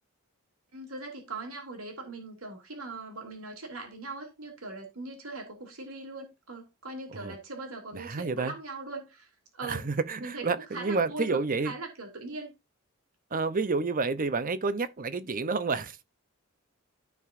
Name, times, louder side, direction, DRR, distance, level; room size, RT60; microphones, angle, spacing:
voice 1, 0.7-9.8 10.2-11.4 11.6-12.5, right 2 dB, 90° right, 2.9 m, -40 dB
voice 2, 7.9-8.5 9.6-11.7 13.3-16.0, right 4 dB, 40° right, 0.7 m, -29 dB
14.0 x 4.8 x 2.6 m
head